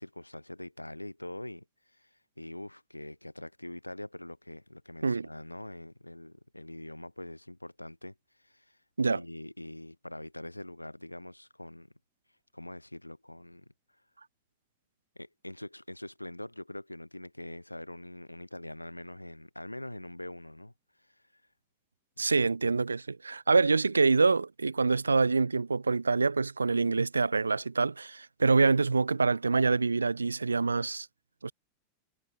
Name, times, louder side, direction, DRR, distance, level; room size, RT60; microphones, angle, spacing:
voice 1, 0.0-8.8 9.1-11.9 12.5-13.6 15.1-20.7 21.0-21.4 22.3-22.5, left 1 dB, 85° left, 3.1 m, -44 dB
voice 2, 22.2-31.1 31.4-31.5, right 4 dB, 80° right, 0.5 m, -26 dB
figure-of-eight pair, 90°, 0 cm